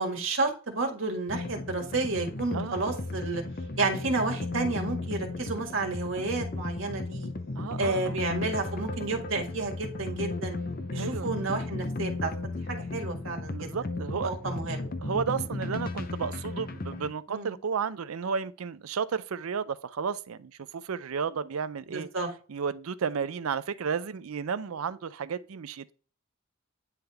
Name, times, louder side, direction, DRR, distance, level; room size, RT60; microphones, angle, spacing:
voice 1, 0.0-3.4 3.8-7.3 7.8-10.6 10.9-13.7 14.2-14.9 17.3-17.5 21.9-22.3, right 3 dB, 70° right, 1.7 m, -31 dB
sound 1, 1.3-17.1, left 2 dB, 45° left, 0.6 m, -35 dB
voice 2, 2.5-2.8 7.6-8.2 10.9-11.3 13.5-14.3 15.0-22.1 22.5-25.9, right 6 dB, 90° right, 0.5 m, -33 dB
9.8 x 3.5 x 3.3 m
head